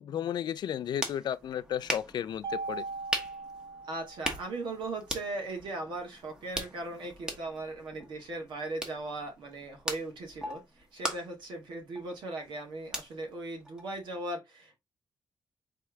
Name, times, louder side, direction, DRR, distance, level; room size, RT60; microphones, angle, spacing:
voice 1, 0.0-2.8, left 9 dB, 65° left, 0.4 m, -33 dB
sound 1, 0.6-14.3, equal, 10° right, 1.0 m, -41 dB
Mallet percussion, 2.4-4.7, right 4 dB, 50° right, 0.8 m, -39 dB
voice 2, 3.9-14.8, right 2 dB, 85° right, 1.9 m, -38 dB
4.4 x 3.4 x 3.4 m
wide cardioid pair, 145°, 8 cm